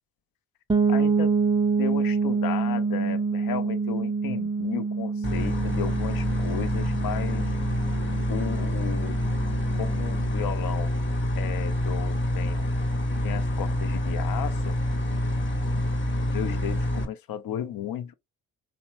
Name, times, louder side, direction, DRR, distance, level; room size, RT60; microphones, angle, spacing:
sound 1, 0.7-10.4, right 4 dB, 10° right, 0.5 m, -27 dB
voice 1, 0.9-1.3 1.8-7.5 8.3-9.2 9.7-10.9 11.4-12.7 13.2-14.8 15.7-15.8 16.3-18.1, left 10 dB, 50° left, 0.6 m, -34 dB
sound 2, 5.2-17.0, left 1 dB, 25° left, 0.9 m, -27 dB
2.9 x 2.2 x 2.7 m
hypercardioid pair, 45°, 45 cm